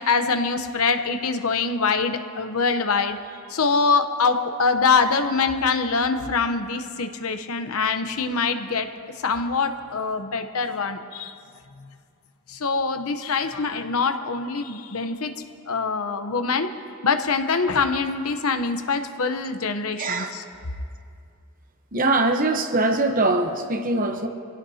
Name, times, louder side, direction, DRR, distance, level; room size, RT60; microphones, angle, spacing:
voice 1, 0.0-3.2 3.5-8.9 9.2-11.4 12.5-15.3 15.7-16.7 17.0-20.4, left 4 dB, 80° left, 8 dB, 0.9 m, -24 dB
voice 2, 20.0-20.3 21.9-24.3, right 2 dB, 40° right, 6 dB, 0.9 m, -22 dB
25.0 x 16.5 x 2.8 m, 2.3 s
head